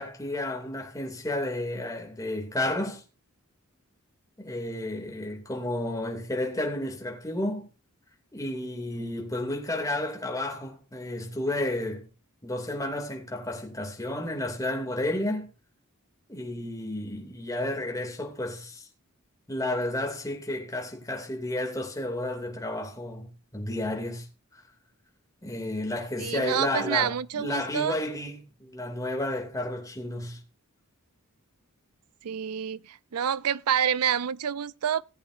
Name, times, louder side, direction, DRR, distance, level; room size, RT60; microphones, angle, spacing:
voice 1, 0.0-3.0 4.4-7.7 8.3-12.1 12.4-15.5 16.3-18.9 19.5-24.3 25.4-30.4, left 1 dB, 15° left, 2.7 m, -32 dB
voice 2, 26.2-28.0 32.2-35.0, right 8 dB, 80° right, 0.5 m, -28 dB
19.0 x 8.3 x 2.6 m
head